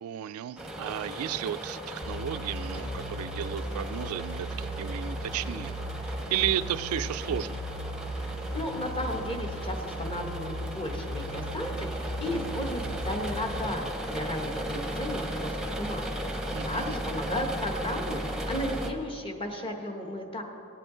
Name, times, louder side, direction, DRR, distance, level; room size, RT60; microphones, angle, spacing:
voice 1, 0.0-5.8 6.0-7.6 16.5-17.0, right 10 dB, 75° right, 14 dB, 0.3 m, -33 dB
sound 1, 0.6-18.9, equal, 5° right, 0.8 m, -36 dB
sound 2, 2.0-13.6, equal, 90° left, 1.9 m, -37 dB
voice 2, 8.2-16.1 16.4-20.4, left 1 dB, 25° left, 3 dB, 1.0 m, -34 dB
18.0 x 7.7 x 3.8 m, 2.8 s
head